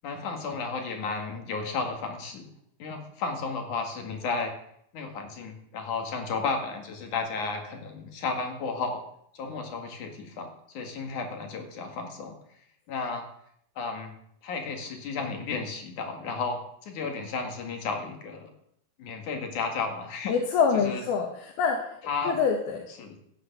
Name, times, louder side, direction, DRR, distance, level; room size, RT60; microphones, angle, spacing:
voice 1, 0.0-2.5 2.8-4.5 4.9-9.0 9.3-12.3 12.9-13.2 13.8-14.1 14.4-18.5 19.0-20.3 20.8-21.0 22.1-22.4 23.0-23.1, left 4 dB, 55° left, 3 dB, 3.2 m, -33 dB
voice 2, 20.3-21.8 22.2-22.8, left 6 dB, 75° left, 1 dB, 3.2 m, -25 dB
16.0 x 8.2 x 6.9 m, 0.71 s
omnidirectional pair, 4.6 m